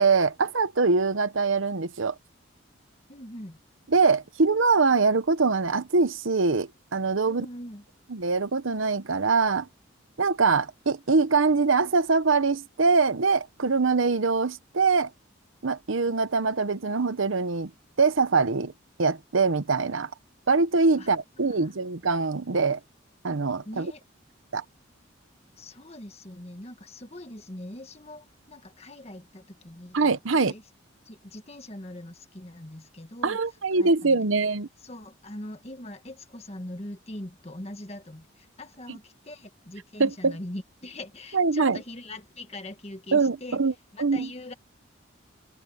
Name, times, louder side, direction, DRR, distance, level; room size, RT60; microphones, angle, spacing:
voice 1, 0.0-2.1 3.9-7.5 8.1-9.7 10.2-15.1 15.6-17.7 18.0-18.7 19.0-20.1 20.5-22.8 23.2-23.9 24.5-24.6 29.9-30.5 33.2-34.7 40.0-40.4 41.3-41.8 43.1-43.7 44.0-44.3, right 4 dB, 80° right, 0.9 m, -23 dB
voice 2, 3.1-3.6 7.3-7.8 21.0-21.1 21.4-21.7 23.7-24.0 25.6-30.6 31.1-33.4 33.7-34.2 34.8-43.6 43.9-44.5, left 1 dB, 30° left, 1.7 m, -42 dB
open air
head